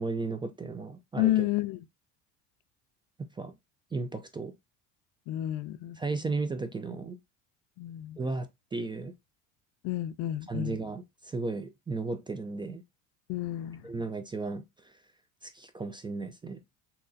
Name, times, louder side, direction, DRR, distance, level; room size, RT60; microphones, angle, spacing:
voice 1, 0.0-1.5 3.4-3.5 3.9-4.5 6.0-7.2 8.2-9.1 10.5-12.8 13.8-14.9 15.4-16.6, right 3 dB, 15° right, 0.3 m, -35 dB
voice 2, 1.2-1.8 5.3-6.0 7.8-8.2 9.8-10.8 13.3-13.8, left 14 dB, 65° left, 0.5 m, -30 dB
3.8 x 2.9 x 2.6 m
supercardioid pair, 85°, 38 cm